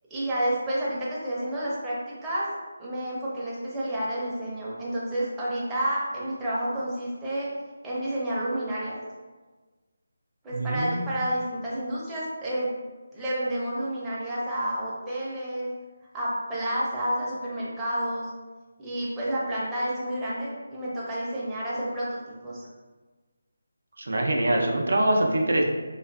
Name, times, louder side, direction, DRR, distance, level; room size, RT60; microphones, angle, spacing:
voice 1, 0.1-2.5 2.8-7.5 7.8-9.0 10.4-12.7 13.1-15.7 16.1-18.3 18.8-22.6, right 1 dB, 10° right, -8 dB, 0.5 m, -30 dB
voice 2, 10.5-11.1 24.0-25.6, right 1 dB, 70° right, 1 dB, 0.4 m, -24 dB
2.5 x 2.3 x 2.3 m, 1.3 s
figure-of-eight pair, 160°, 0 cm